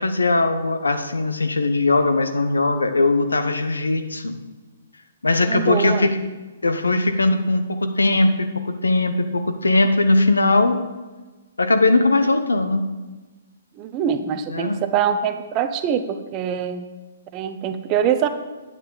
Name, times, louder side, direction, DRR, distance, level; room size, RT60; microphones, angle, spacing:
voice 1, 0.0-4.4 5.2-6.2 6.6-10.8 11.6-12.8 14.5-14.8, left 2 dB, 80° left, 9 dB, 0.9 m, -19 dB
voice 2, 5.4-6.1 13.8-16.8 17.3-18.3, right 8 dB, 30° right, 9 dB, 0.7 m, -24 dB
9.0 x 9.0 x 3.9 m, 1.2 s
figure-of-eight pair, 125°, 0 cm